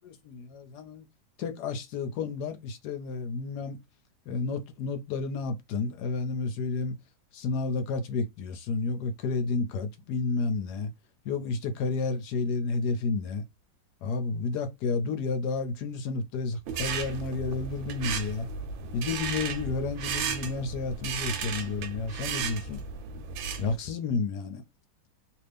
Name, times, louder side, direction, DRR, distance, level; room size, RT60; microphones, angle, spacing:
voice 1, 0.2-1.1 1.4-3.8 4.3-7.0 7.3-10.9 11.2-13.4 14.0-18.5 18.9-22.8 23.6-24.6, left 4 dB, 70° left, 1.0 m, -31 dB
sound 1, 16.7-23.8, right 6 dB, 90° right, 1.4 m, -34 dB
2.9 x 2.6 x 3.4 m
omnidirectional pair, 2.1 m